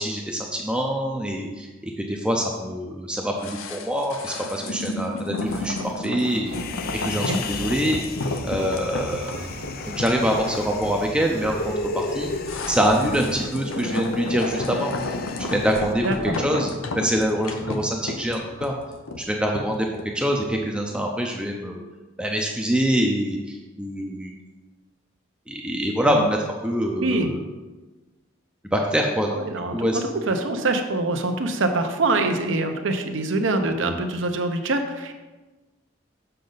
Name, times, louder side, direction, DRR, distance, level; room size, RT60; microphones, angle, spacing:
voice 1, 0.0-6.5 7.0-8.0 8.4-9.4 9.9-12.3 12.7-14.9 15.4-16.0 16.4-18.7 19.2-19.9 20.1-21.8 22.2-24.3 25.5-26.4 26.6-27.4 28.7-29.4 29.7-30.0, equal, 5° right, 0 dB, 0.5 m, -25 dB
sound 1, 3.4-20.6 20.9-21.0, left 2 dB, 90° left, 0.7 m, -32 dB
sound 2, 5.5-6.0 6.2-7.9 8.2-13.5, right 1 dB, 50° right, 1.0 m, -40 dB
Human voice, 6.5-15.9, left 3 dB, 45° left, 0.4 m, -34 dB
voice 2, 16.0-16.4 26.1-26.3 27.0-27.3 29.3-35.1, right 2 dB, 75° right, 6 dB, 0.8 m, -24 dB
6.8 x 6.4 x 4.0 m, 1.2 s
head